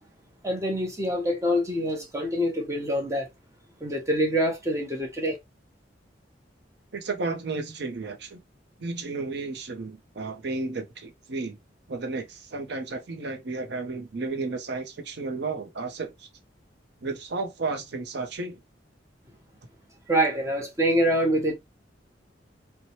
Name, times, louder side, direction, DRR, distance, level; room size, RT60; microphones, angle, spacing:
voice 1, 0.4-3.3 3.8-5.4 20.1-21.5, equal, 15° right, 0.8 m, -25 dB
voice 2, 6.9-8.4 8.8-11.6 11.9-16.3 17.0-18.6, right 3 dB, 65° right, 0.6 m, -33 dB
3.0 x 2.2 x 2.8 m
head